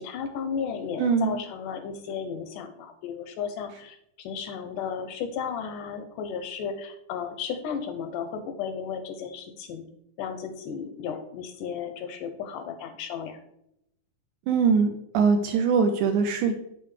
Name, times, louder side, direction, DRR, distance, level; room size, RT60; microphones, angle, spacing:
voice 1, 0.0-9.8 10.2-13.4, left 7 dB, 80° left, 7 dB, 2.0 m, -34 dB
voice 2, 1.0-1.4 14.5-16.5, right 5 dB, 80° right, 5 dB, 1.9 m, -22 dB
7.8 x 7.7 x 3.2 m, 0.79 s
omnidirectional pair, 4.1 m